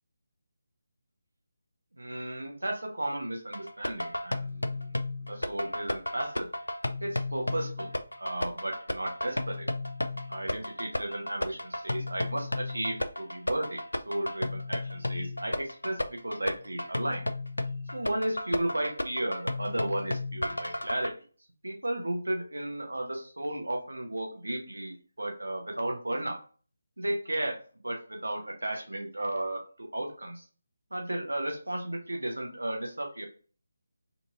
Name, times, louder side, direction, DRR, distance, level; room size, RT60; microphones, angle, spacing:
voice 1, 2.0-4.9 5.3-6.5 7.0-9.7 10.3-17.3 17.9-21.1 21.6-26.4 27.0-27.6 27.8-30.5 30.9-33.2, right 1 dB, 70° right, 2 dB, 0.9 m, -34 dB
sound 1, 3.5-21.1, left 1 dB, 75° left, 0.4 m, -33 dB
4.3 x 2.8 x 2.4 m, 0.39 s
figure-of-eight pair, 155°, 0 cm